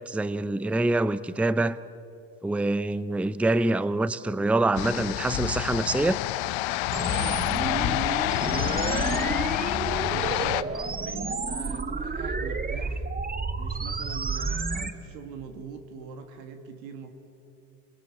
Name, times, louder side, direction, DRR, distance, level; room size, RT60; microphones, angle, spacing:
voice 1, 0.0-1.8 2.4-6.2, right 2 dB, 5° right, 0.6 m, -25 dB
sound 1, 4.8-10.6, left 18 dB, 70° left, 0.8 m, -28 dB
sound 2, 6.9-14.9, right 4 dB, 20° right, 1.3 m, -30 dB
voice 2, 6.9-9.4 9.8-13.1 13.6-17.1, right 5 dB, 90° right, 2.1 m, -42 dB
26.5 x 19.0 x 8.4 m
hypercardioid pair, 65°, 49 cm